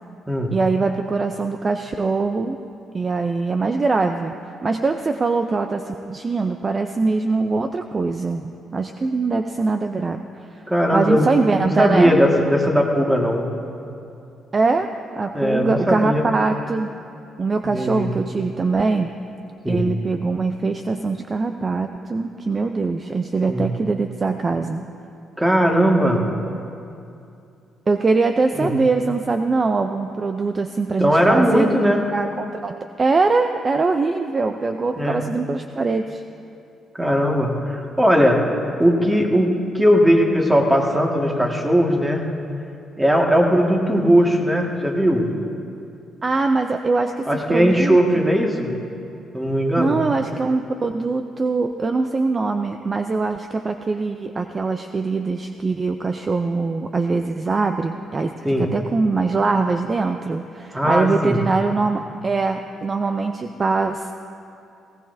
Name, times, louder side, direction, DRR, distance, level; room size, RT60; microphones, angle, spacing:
voice 1, 0.5-2.6 2.9-4.3 4.6-10.6 10.9-12.2 14.5-14.9 15.2-16.9 17.4-19.2 19.7-24.8 27.9-36.2 46.2-48.3 49.8-64.1, right 3 dB, 35° right, 6 dB, 0.5 m, -22 dB
voice 2, 10.7-11.3 11.6-13.5 15.3-16.2 17.6-18.1 19.6-19.8 23.5-23.7 25.4-26.2 28.6-28.7 31.0-32.0 35.0-35.2 37.0-38.5 38.8-42.2 43.0-45.3 47.3-48.7 49.3-50.0 58.4-58.7 60.7-61.4, equal, 10° right, 1 dB, 1.8 m, -18 dB
18.5 x 17.0 x 2.7 m, 2.6 s
cardioid pair, 90°, 0 cm